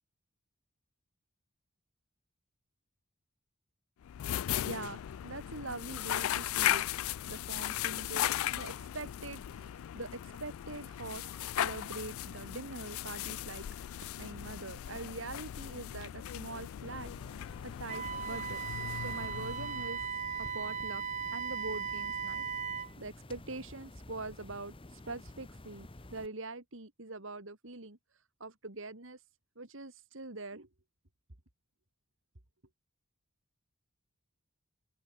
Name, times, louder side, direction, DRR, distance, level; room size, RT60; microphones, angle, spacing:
sound 1, 4.0-20.2, left 12 dB, 80° left, 0.3 m, -37 dB
voice 1, 4.6-6.8 7.3-13.6 14.2-18.6 18.9-21.0 21.3-22.4 23.0-28.0 28.4-29.2 29.6-30.7, right 3 dB, 65° right, 2.5 m, -44 dB
sound 2, 16.8-26.3, left 1 dB, 25° left, 1.0 m, -51 dB
Wind instrument woodwind instrument, 17.9-22.9, right 6 dB, 35° right, 1.8 m, -37 dB
open air
head